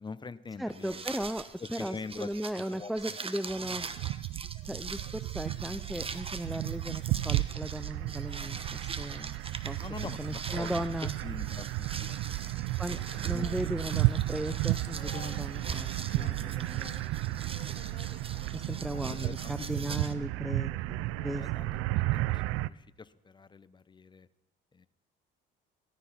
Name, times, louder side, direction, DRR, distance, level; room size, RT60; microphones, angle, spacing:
voice 1, 0.0-1.0 1.6-3.2 9.8-12.7 13.0-13.9 19.0-19.5 21.4-24.3 24.7-24.9, left 4 dB, 20° left, 14 dB, 0.9 m, -44 dB
voice 2, 0.6-3.9 4.7-9.4 9.6-9.9 10.2-11.1 12.8-13.0 13.3-15.9 16.1-16.9 18.5-21.9, equal, ahead, 13 dB, 0.4 m, -37 dB
sound 1, 0.7-20.1, right 4 dB, 25° right, 1.1 m, -43 dB
sound 2, 3.6-22.7, right 18 dB, 85° right, 0.5 m, -33 dB
Boat Water vehicle, 12.7-21.9, left 6 dB, 35° left, 2.6 m, -54 dB
16.0 x 13.5 x 5.9 m, 0.95 s
cardioid pair, 90°, 21 cm